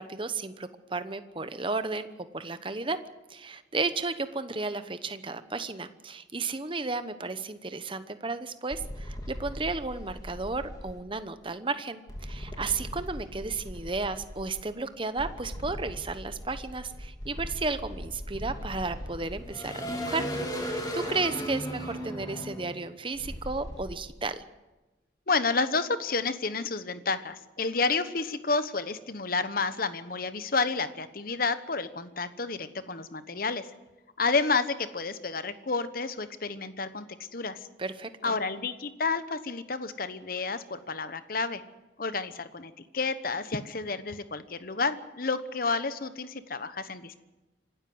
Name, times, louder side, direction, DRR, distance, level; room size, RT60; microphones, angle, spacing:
voice 1, 0.0-2.1 2.3-3.0 3.3-24.4 37.8-38.3, right 3 dB, 30° right, 11 dB, 1.0 m, -33 dB
sound 1, 8.7-11.0 12.1-14.6 15.2-23.9, equal, 20° left, 2.7 m, -37 dB
voice 2, 25.3-33.7 34.2-37.0 37.3-37.6 38.2-41.6 42.0-47.2, left 4 dB, 50° left, 12 dB, 1.1 m, -30 dB
26.5 x 12.5 x 7.8 m, 1.1 s
head